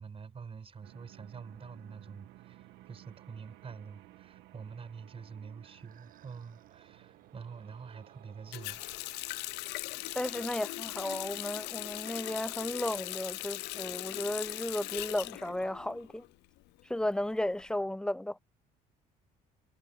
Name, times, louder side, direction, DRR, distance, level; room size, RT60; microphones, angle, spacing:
voice 1, 0.0-8.8, right 6 dB, 35° right, 5.1 m, -47 dB
sound 1, 0.8-10.5, right 16 dB, 90° right, 1.7 m, -57 dB
sound 2, 5.1-13.6, right 10 dB, 55° right, 7.1 m, -64 dB
Water tap faucet, 8.5-16.3 16.6-17.6, left 20 dB, 85° left, 0.5 m, -39 dB
voice 2, 10.1-16.2 16.9-18.4, left 1 dB, 5° left, 0.9 m, -34 dB
cardioid pair, 110°, 17 cm